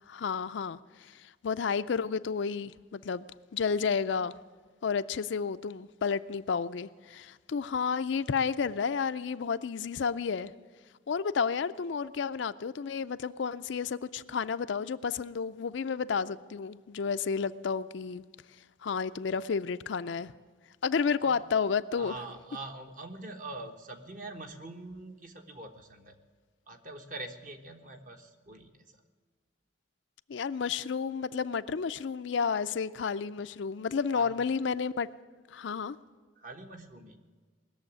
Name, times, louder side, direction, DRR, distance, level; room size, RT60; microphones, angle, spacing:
voice 1, 0.1-3.3 3.5-4.3 4.8-10.5 11.1-18.2 18.8-20.3 20.8-22.1 30.3-35.1 35.5-36.0, left 6 dB, 70° left, 0.4 m, -31 dB
voice 2, 21.9-26.2 26.7-29.0 34.1-34.4 36.4-37.2, right 2 dB, 45° right, 1.2 m, -44 dB
19.0 x 7.1 x 9.8 m
head